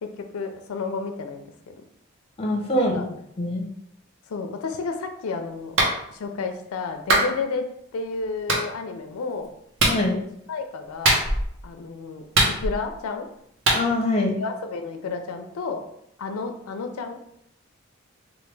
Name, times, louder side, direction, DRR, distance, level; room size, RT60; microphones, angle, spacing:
voice 1, 0.0-1.7 2.7-3.0 4.3-5.8 6.1-7.6 7.9-9.5 10.5-11.2 11.6-12.2 12.6-13.3 14.4-15.8 16.2-17.2, left 4 dB, 90° left, 6 dB, 0.4 m, -31 dB
voice 2, 2.4-3.0 3.4-3.7 9.9-10.2 13.7-14.4, left 1 dB, 25° left, 0 dB, 0.5 m, -23 dB
Clapping, 5.8-5.9 7.1-7.3 8.5-8.6 9.8-10.0 11.0-11.5 12.3-12.9 13.7-13.8, right 1 dB, 65° right, 0.7 m, -20 dB
3.2 x 2.2 x 3.1 m, 0.73 s
head